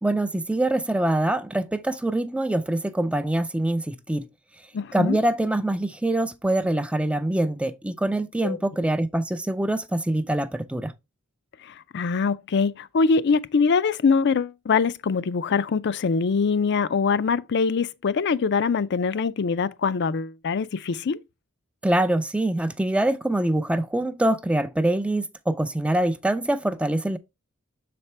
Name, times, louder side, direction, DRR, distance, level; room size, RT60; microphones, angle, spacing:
voice 1, 0.0-4.3 4.9-10.9 21.8-27.2, right 1 dB, 5° right, 0.4 m, -24 dB
voice 2, 4.7-5.2 8.4-8.6 11.6-21.2, left 5 dB, 55° left, 0.4 m, -23 dB
6.7 x 4.2 x 3.3 m
head